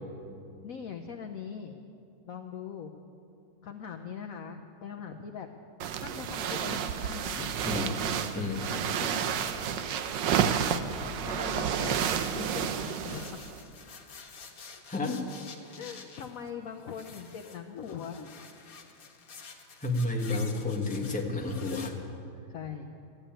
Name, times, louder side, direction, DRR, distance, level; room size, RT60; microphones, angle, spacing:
voice 1, 0.6-1.7 2.3-2.9 3.6-5.5 6.0-7.7 8.5-9.2 11.2-13.2 15.8-18.3 22.5-22.9, left 7 dB, 65° left, 5 dB, 0.9 m, -41 dB
sound 1, 5.8-13.6, right 8 dB, 70° right, 1.3 m, -30 dB
sound 2, 7.5-12.5, equal, 50° right, 3.6 m, -52 dB
voice 2, 7.6-8.0 8.3-8.7 14.9-15.2 19.8-22.0, left 2 dB, 5° left, 0 dB, 1.1 m, -31 dB
sound 3, 9.7-11.1 11.5-21.9, left 5 dB, 50° left, 1.5 m, -50 dB
15.0 x 10.5 x 8.9 m, 2.6 s
omnidirectional pair, 2.2 m